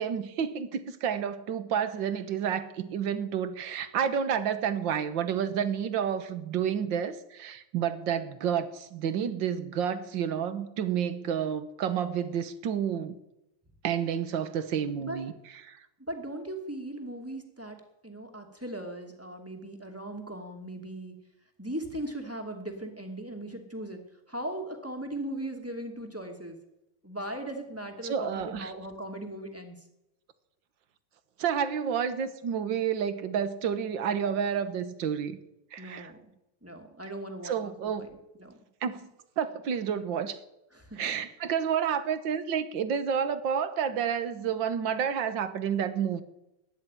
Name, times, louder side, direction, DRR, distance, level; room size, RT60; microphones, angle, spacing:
voice 1, 0.0-13.1 13.8-15.3 15.6-15.8 28.0-28.7 31.4-35.4 35.7-36.1 37.4-38.1 38.8-39.1 39.4-40.4 41.0-46.2, right 8 dB, 60° right, 1.8 m, -30 dB
voice 2, 16.0-17.8 18.0-21.1 21.6-24.0 24.3-26.6 27.0-29.7 35.8-36.2 36.6-37.7 38.0-38.5 40.7-41.2, right 1 dB, 5° right, 2.3 m, -38 dB
14.5 x 10.5 x 9.2 m
omnidirectional pair, 2.4 m